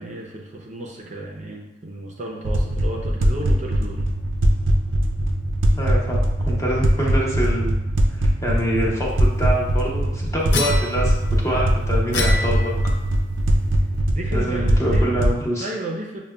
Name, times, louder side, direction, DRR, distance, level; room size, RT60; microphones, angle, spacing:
voice 1, 0.0-4.0 14.1-15.3 15.6-16.2, right 1 dB, 40° right, -1 dB, 0.5 m, -33 dB
sound 1, 2.4-15.4, right 1 dB, 90° right, 0.5 m, -21 dB
voice 2, 5.7-7.8 8.4-12.7 14.3-15.7, equal, 15° left, -4 dB, 0.7 m, -25 dB
sound 2, 10.5-11.4 12.1-13.1, left 3 dB, 65° left, 0.5 m, -27 dB
6.4 x 2.2 x 2.3 m, 0.99 s
head